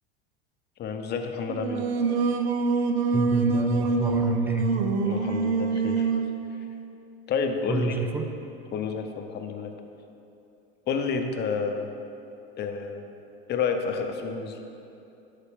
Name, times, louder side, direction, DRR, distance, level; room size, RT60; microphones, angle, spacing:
voice 1, 0.8-1.9 5.1-6.1 7.3-8.0 8.7-9.7 10.9-11.9 12.6-13.0 13.5-14.6, left 5 dB, 35° left, 5 dB, 0.7 m, -29 dB
Singing, 1.5-6.4, right 4 dB, 80° right, 0.6 m, -25 dB
voice 2, 3.1-4.7 7.7-8.3, right 3 dB, 5° right, 4 dB, 0.5 m, -28 dB
11.5 x 4.1 x 3.6 m, 2.8 s
hypercardioid pair, 90°, 31 cm